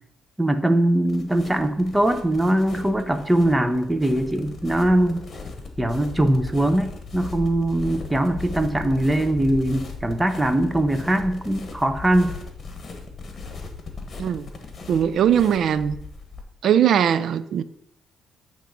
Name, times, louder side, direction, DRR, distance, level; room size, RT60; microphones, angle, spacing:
voice 1, 0.4-5.2 5.8-12.4, right 1 dB, 10° right, 0.7 m, -21 dB
sound 1, 1.1-16.4, left 3 dB, 40° left, 1.2 m, -38 dB
voice 2, 14.9-16.0 16.6-17.6, right 9 dB, 65° right, 0.4 m, -20 dB
9.0 x 3.1 x 5.2 m
cardioid pair, 90°, 0 cm